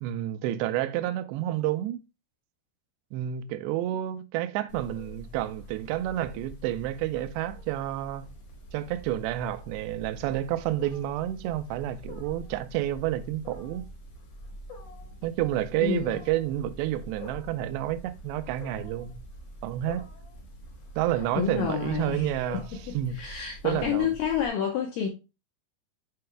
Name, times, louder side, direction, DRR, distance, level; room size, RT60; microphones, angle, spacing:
voice 1, 0.0-2.0 3.1-8.3 8.7-13.8 15.2-19.2 19.6-20.0 21.0-22.6 22.9-23.2 23.6-24.1, right 13 dB, 80° right, 2.6 m, -30 dB
Wild animals, 4.7-24.5, equal, 65° left, 1.2 m, -45 dB
voice 2, 15.8-16.2 21.4-22.4 22.7-25.1, left 8 dB, 85° left, 2.0 m, -29 dB
7.8 x 4.8 x 3.3 m
omnidirectional pair, 5.2 m